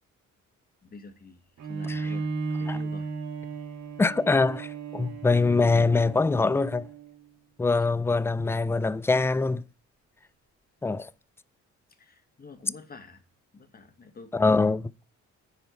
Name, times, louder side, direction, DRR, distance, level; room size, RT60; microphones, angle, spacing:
voice 1, 0.8-2.3 2.6-3.1 3.5-3.7 5.0-5.1 12.0-13.2 13.5-14.6, left 3 dB, 30° left, 1.7 m, -47 dB
Bowed string instrument, 1.6-7.2, right 4 dB, 65° right, 1.8 m, -35 dB
voice 2, 4.0-6.9 7.6-9.6 10.8-11.1 14.3-14.8, left 3 dB, 10° left, 0.4 m, -23 dB
9.9 x 4.5 x 7.0 m
cardioid pair, 90°, 30 cm